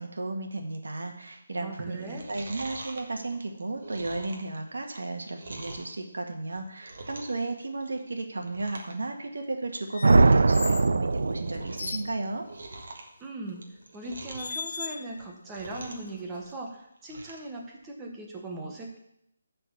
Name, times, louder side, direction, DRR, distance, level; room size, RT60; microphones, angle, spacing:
voice 1, 0.0-12.4, right 2 dB, 85° right, 4 dB, 1.8 m, -34 dB
voice 2, 1.6-2.2 13.2-13.6 13.9-19.0, right 2 dB, 10° right, 0 dB, 1.0 m, -39 dB
Chewing mastication, 1.9-5.9 6.4-7.5 7.7-8.1 8.4-8.9 9.2-9.3 9.8-9.9 10.1-10.5 10.9-11.9 12.2-14.6 15.1-16.1 16.4-17.5 17.9-18.0, right 2 dB, 50° right, 1.5 m, -44 dB
sound 1, 9.9-11.0 11.5-12.1 13.5-13.7 14.4-15.2 15.6-16.5, left 5 dB, 45° left, 0.5 m, -38 dB
sound 2, 10.0-12.0, right 3 dB, 70° right, 0.5 m, -21 dB
10.5 x 4.5 x 7.1 m, 0.77 s
hypercardioid pair, 175°, 0 cm